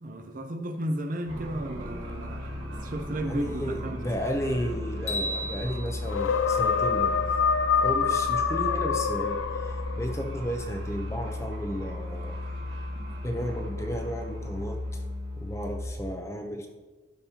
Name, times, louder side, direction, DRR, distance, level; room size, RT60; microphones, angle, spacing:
voice 1, 0.0-2.5 2.8-4.0, right 1 dB, 45° right, 6 dB, 0.6 m, -34 dB
sound 1, 1.3-15.9, left 1 dB, 85° right, 1.9 m, -36 dB
voice 2, 3.2-7.2 7.8-12.4 13.2-15.0 15.4-16.7, equal, 15° left, 3 dB, 0.7 m, -33 dB
sound 2, 5.1-7.3, equal, 35° left, 1.5 m, -36 dB
sound 3, 6.0-10.1, left 6 dB, 90° left, 0.4 m, -26 dB
11.5 x 5.3 x 2.9 m, 1.2 s
head